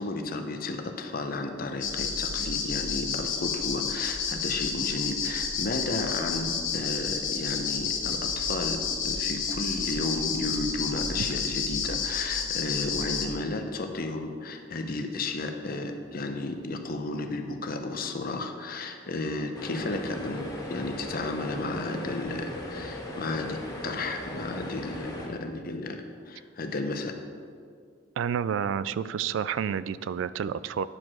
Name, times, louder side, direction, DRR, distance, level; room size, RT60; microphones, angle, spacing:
voice 1, 0.0-27.2, left 2 dB, 50° left, 6 dB, 0.8 m, -33 dB
sound 1, 1.8-13.3, left 6 dB, 80° left, 1.2 m, -30 dB
sound 2, 19.5-25.3, left 1 dB, 20° left, 1.3 m, -38 dB
voice 2, 28.2-30.8, right 7 dB, 75° right, 16 dB, 0.3 m, -29 dB
9.8 x 4.6 x 6.1 m, 2.2 s
head